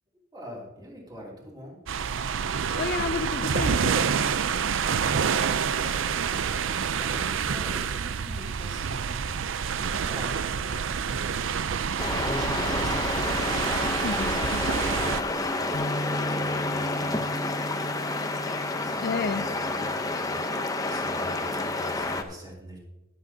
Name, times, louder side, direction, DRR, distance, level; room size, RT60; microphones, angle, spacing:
voice 1, 0.3-1.8 6.9-9.2 9.7-11.6 12.1-14.1 14.5-17.9 18.6-22.8, equal, 20° right, -3 dB, 2.7 m, -44 dB
sound 1, 1.9-15.2, right 6 dB, 70° right, 0.5 m, -28 dB
voice 2, 2.8-4.3 14.0-14.4 19.0-19.5, left 5 dB, 50° left, 11 dB, 0.4 m, -31 dB
sound 2, 12.0-22.2, left 2 dB, 20° left, 0.7 m, -29 dB
Bass guitar, 15.7-22.0, equal, 90° left, 0.9 m, -38 dB
21.5 x 7.7 x 2.8 m, 1.1 s
head